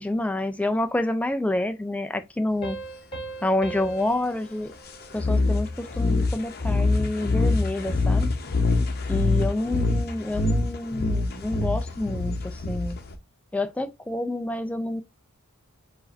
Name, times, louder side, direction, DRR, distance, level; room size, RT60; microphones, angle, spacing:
voice 1, 0.0-2.8 3.4-4.7 5.1-8.3 9.1-13.0 13.5-15.0, left 1 dB, 5° left, 0.3 m, -28 dB
sound 1, 2.6-5.9, right 3 dB, 25° left, 1.9 m, -40 dB
sound 2, 5.2-13.1, left 3 dB, 45° left, 0.8 m, -24 dB
4.7 x 2.6 x 4.2 m
head